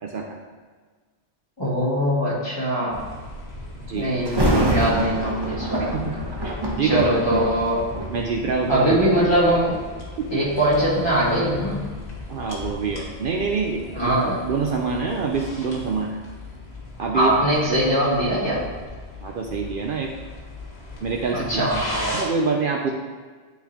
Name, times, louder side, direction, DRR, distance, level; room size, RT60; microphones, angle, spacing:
voice 1, 0.0-0.4 3.9-4.1 5.8-6.1 6.4-7.4 8.1-8.8 10.2-10.4 12.3-14.2 14.4-16.2 17.0-17.3 17.7-17.9 19.2-20.1 21.0-21.7 22.1-22.9, right 4 dB, 60° right, 1 dB, 0.7 m, -26 dB
voice 2, 1.6-3.0 3.9-6.1 6.8-7.8 8.7-9.8 10.3-11.9 13.9-14.4 17.1-18.6 21.3-22.2, right 1 dB, 25° left, -9 dB, 2.1 m, -22 dB
sound 1, 2.9-22.2, left 2 dB, 80° left, 1.6 m, -37 dB
Thunder, 4.2-9.2 9.9-10.1 10.7-13.6 13.9-14.0, right 1 dB, 25° right, 0.7 m, -27 dB
10.0 x 3.8 x 2.9 m, 1.5 s
omnidirectional pair, 1.1 m